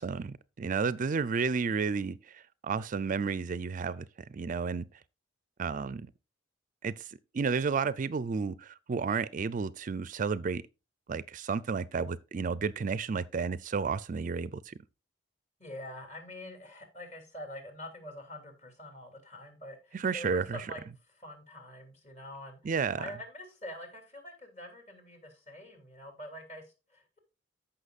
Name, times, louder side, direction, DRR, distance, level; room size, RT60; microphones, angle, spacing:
voice 1, 0.0-4.9 5.6-6.1 6.8-10.6 11.1-14.7 19.9-20.7 22.6-23.1, right 5 dB, 45° right, 0.4 m, -32 dB
voice 2, 15.6-20.8 21.2-22.7 23.0-27.2, left 1 dB, 40° left, 2.9 m, -45 dB
14.5 x 5.8 x 2.4 m
head